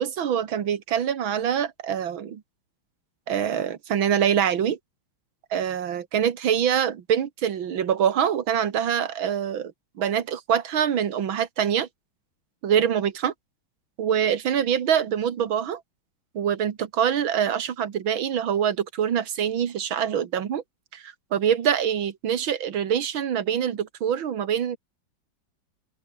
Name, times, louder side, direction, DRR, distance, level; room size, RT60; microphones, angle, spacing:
voice 1, 0.0-2.4 3.3-4.8 5.5-9.7 10.0-11.9 12.6-13.3 14.0-15.8 16.3-20.6 20.9-24.8, right 9 dB, 80° right, 2.3 m, -24 dB
omnidirectional pair, 2.1 m